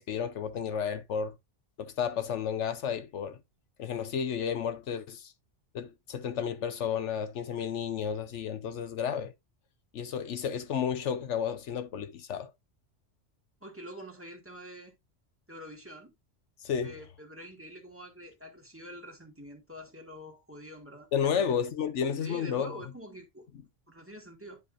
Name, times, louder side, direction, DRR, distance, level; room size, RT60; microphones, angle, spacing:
voice 1, 0.0-1.3 1.8-3.4 3.8-5.3 5.7-9.3 9.9-12.5 16.6-16.9 21.1-22.7, left 7 dB, 80° left, 1.1 m, -32 dB
voice 2, 13.6-14.9 15.5-16.1 16.8-21.4 22.2-23.5 23.9-24.6, equal, 10° right, 2.1 m, -46 dB
10.5 x 5.2 x 2.6 m
omnidirectional pair, 1.2 m